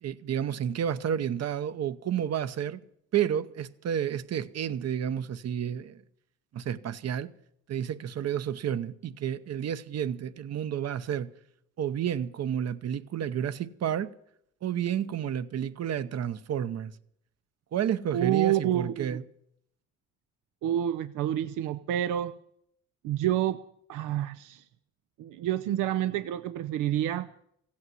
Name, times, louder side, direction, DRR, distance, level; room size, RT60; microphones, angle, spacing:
voice 1, 0.0-2.8 3.1-6.0 6.5-7.3 7.7-11.3 11.8-14.1 14.6-16.9 17.7-19.2, right 9 dB, 55° right, 0.9 m, -31 dB
voice 2, 18.1-19.2 20.6-22.3 23.0-23.6 23.9-24.7 25.2-27.3, right 12 dB, 90° right, 0.6 m, -28 dB
15.5 x 8.6 x 9.4 m
cardioid pair, 90°, 30 cm